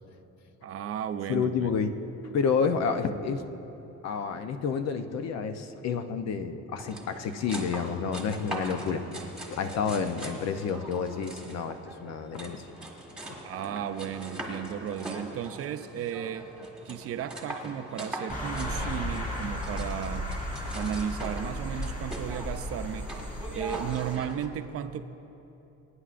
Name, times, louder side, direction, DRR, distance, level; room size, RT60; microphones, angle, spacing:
voice 1, 0.6-1.8 13.4-16.5 16.8-20.3 20.7-23.1 23.5-25.0, right 9 dB, 50° right, 10 dB, 0.5 m, -34 dB
voice 2, 1.3-1.9 2.3-3.4 4.0-9.0 9.5-12.7 13.3-13.4, left 6 dB, 65° left, 8 dB, 0.7 m, -29 dB
sound 1, 6.8-24.5, right 1 dB, 5° right, 1.6 m, -41 dB
sound 2, 18.3-24.2, equal, 30° left, 2.3 m, -35 dB
23.5 x 9.7 x 2.5 m, 3.0 s
cardioid pair, 125°, 29 cm